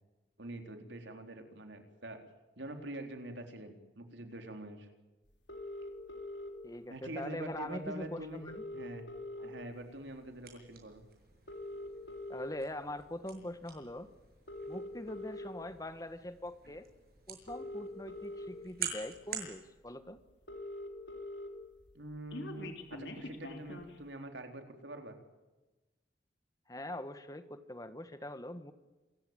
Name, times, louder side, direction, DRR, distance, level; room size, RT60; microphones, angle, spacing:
voice 1, 0.4-2.2 2.6-4.9 6.9-8.4 8.7-9.1 9.4-11.0 21.9-25.2, right 1 dB, 90° right, 5 dB, 3.8 m, -45 dB
sound 1, 5.5-6.5 7.7-7.8 8.0-8.1 8.3-9.8 10.2-10.5 11.3-12.5 13.2-13.4 14.3-15.5 16.7-16.8 17.3-18.5 19.2-19.3 19.6-19.7 19.9-20.0 20.2-21.5 21.8-24.0, left 2 dB, 85° left, 3.3 m, -43 dB
voice 2, 6.6-8.6 9.4-9.5 12.3-14.1 14.7-16.9 17.3-20.2 26.7-28.7, left 1 dB, 20° left, 11 dB, 1.5 m, -43 dB
sound 2, 9.7-19.5, right 8 dB, 55° right, 6.6 m, -48 dB
27.5 x 15.0 x 9.1 m, 1.1 s
head